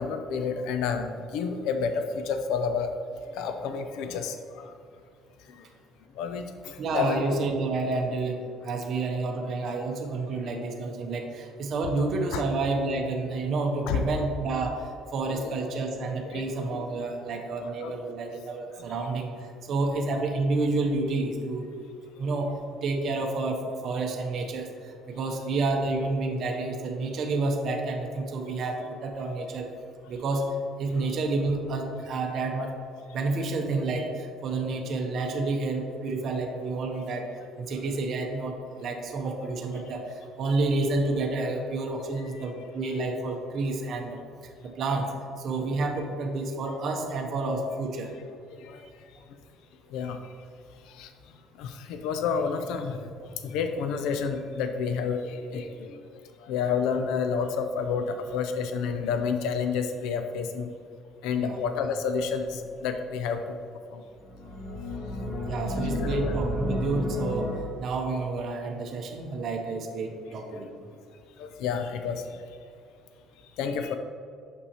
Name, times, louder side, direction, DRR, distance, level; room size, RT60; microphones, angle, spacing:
voice 1, 0.0-2.9 3.3-4.7 5.5-5.7 6.2-7.2 12.3-12.4 13.9-14.0 15.3-15.5 16.2-16.5 17.6-17.9 31.0-31.1 42.2-42.5 48.5-49.0 49.9-50.2 50.8-51.1 51.6-56.0 56.4-60.7 61.2-63.6 63.9-64.0 66.0-66.4 71.4-72.4 73.6-74.0, left 6 dB, 85° left, 7 dB, 0.4 m, -30 dB
voice 2, 6.8-21.7 22.2-29.7 30.1-32.7 33.1-37.3 37.6-44.2 44.6-45.1 45.4-48.1 61.4-61.6 65.4-67.5 67.8-70.7, right 3 dB, 45° right, 2 dB, 0.6 m, -29 dB
sound 1, 62.3-63.0 64.2-67.6, left 1 dB, 40° left, 1.0 m, -31 dB
6.2 x 5.5 x 2.8 m, 2.4 s
cardioid pair, 165°, 0 cm